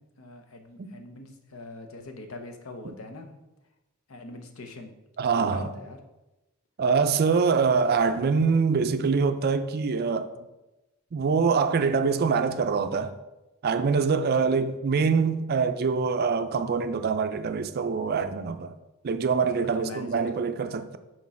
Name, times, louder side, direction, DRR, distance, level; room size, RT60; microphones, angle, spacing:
voice 1, 0.0-3.4 4.1-4.9 5.3-6.0 14.4-14.5 19.5-20.3, left 2 dB, 70° left, 0.8 m, -42 dB
voice 2, 5.2-5.7 6.8-10.3 11.1-13.1 13.6-18.7 19.0-21.0, right 5 dB, 45° right, 0.4 m, -24 dB
6.2 x 4.5 x 4.2 m
head